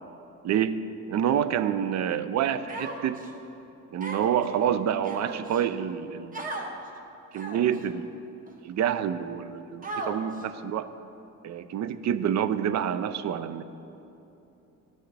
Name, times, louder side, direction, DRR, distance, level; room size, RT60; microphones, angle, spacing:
voice 1, 0.4-3.2 3.9-6.4 7.3-8.1 8.6-10.9 11.4-13.6, right 9 dB, 55° right, 13 dB, 0.4 m, -27 dB
Human voice, 2.7-3.3 4.0-4.5 5.0-5.6 6.3-6.7 7.3-7.8 8.5-8.6 9.8-10.4, right 2 dB, 25° right, 0.9 m, -36 dB
13.0 x 8.1 x 3.3 m, 2.9 s
cardioid pair, 130°, 34 cm